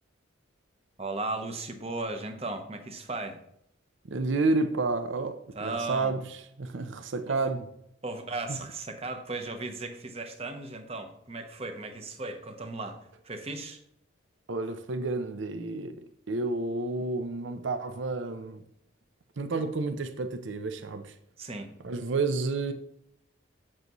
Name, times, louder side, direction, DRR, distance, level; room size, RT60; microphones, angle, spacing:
voice 1, 1.0-3.4 5.5-6.1 7.3-7.4 8.0-13.0 13.2-13.8 21.4-21.7, right 2 dB, 30° right, 0.9 m, -36 dB
voice 2, 4.1-7.7 8.5-8.6 14.5-18.6 19.4-21.2 21.8-22.7, right 3 dB, 65° right, 0.6 m, -30 dB
8.0 x 7.6 x 3.0 m
head